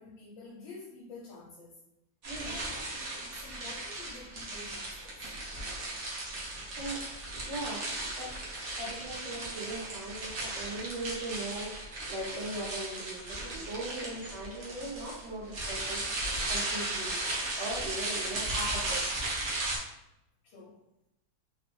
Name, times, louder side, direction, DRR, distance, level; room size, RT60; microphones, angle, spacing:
voice 1, 0.0-1.8 2.4-5.2 20.4-20.8, left 3 dB, 80° left, -5 dB, 1.3 m, -49 dB
sound 1, 2.2-19.8, right 2 dB, 55° right, 0.8 m, -36 dB
voice 2, 2.3-2.6 6.8-7.0 7.3-8.3 8.8-17.1 17.6-19.0, right 1 dB, 80° right, -3 dB, 1.7 m, -39 dB
3.7 x 2.0 x 3.1 m, 0.86 s
omnidirectional pair, 2.1 m